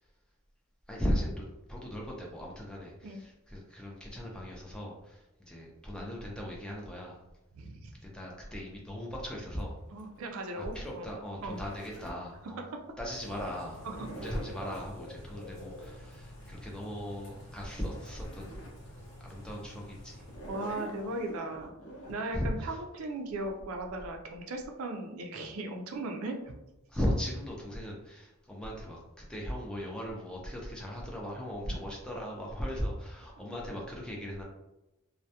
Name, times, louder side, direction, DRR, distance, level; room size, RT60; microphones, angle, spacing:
voice 1, 0.9-1.4 1.7-7.2 8.0-9.8 10.5-12.6 13.0-13.9 14.1-18.6 19.2-20.3 22.3-22.8 26.9-34.4, equal, 5° left, -2 dB, 0.4 m, -37 dB
voice 2, 7.6-7.9 9.9-11.1 11.4-11.7 13.8-14.1 20.5-21.7 22.1-26.5 31.7-31.8, right 2 dB, 70° right, 4 dB, 0.4 m, -37 dB
Zipper (clothing), 9.6-12.3 13.6-14.9 17.5-17.6 17.8-18.8 19.3-19.4 20.2-22.2, right 1 dB, 70° left, 0.6 m, -47 dB
Bird / Rain, 13.1-21.3, left 1 dB, 45° left, 0.9 m, -49 dB
2.2 x 2.1 x 2.7 m, 0.96 s
head